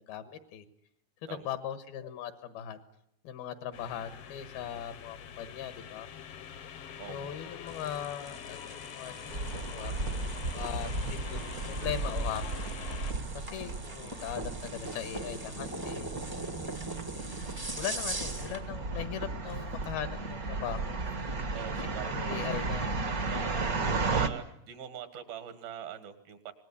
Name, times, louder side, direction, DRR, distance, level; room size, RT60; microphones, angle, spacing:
voice 1, 0.1-0.7 1.2-2.8 3.2-6.1 7.1-9.9 10.5-12.7 13.3-16.1 17.8-21.0 22.0-22.9, left 9 dB, 80° left, 10 dB, 3.2 m, -39 dB
sound 1, 3.7-13.1, left 8 dB, 65° left, 1.5 m, -45 dB
voice 2, 7.0-7.4 19.5-19.7 21.5-22.3 23.3-26.5, right 9 dB, 75° right, 10 dB, 3.4 m, -43 dB
sound 2, 7.7-18.6, right 1 dB, 35° right, 0.3 m, -42 dB
sound 3, 9.3-24.3, right 3 dB, 55° right, 0.9 m, -35 dB
25.5 x 19.5 x 9.8 m, 0.77 s
omnidirectional pair, 4.3 m